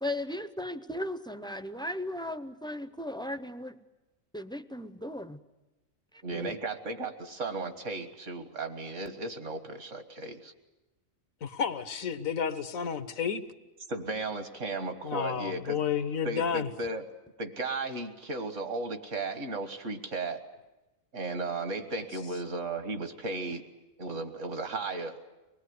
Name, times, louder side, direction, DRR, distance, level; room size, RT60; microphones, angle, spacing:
voice 1, 0.0-3.8 4.3-5.4 6.1-6.5, left 1 dB, 5° left, 10 dB, 0.5 m, -36 dB
voice 2, 6.2-10.5 13.9-15.8 16.2-17.0 17.4-20.4 21.1-23.6 24.0-25.2, right 3 dB, 65° right, 8 dB, 2.0 m, -35 dB
voice 3, 11.4-13.4 15.0-16.7, left 7 dB, 85° left, 11 dB, 1.6 m, -31 dB
25.0 x 19.5 x 9.5 m, 1.1 s
omnidirectional pair, 1.4 m